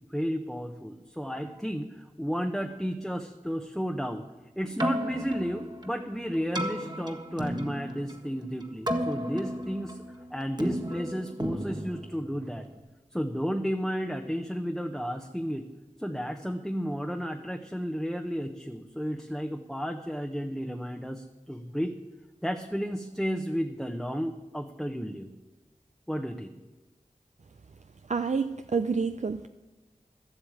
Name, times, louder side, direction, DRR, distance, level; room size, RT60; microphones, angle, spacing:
voice 1, 0.1-4.2 4.6-10.0 10.3-12.7 13.1-15.7 16.0-21.9 22.4-25.3 26.1-26.5, equal, ahead, 3 dB, 0.9 m, -33 dB
Keyboard (musical), 4.6-12.8, equal, 30° right, 1.6 m, -34 dB
voice 2, 28.1-29.5, right 5 dB, 60° right, 9 dB, 0.5 m, -28 dB
12.5 x 8.1 x 8.7 m, 1.1 s
wide cardioid pair, 40°, 14 cm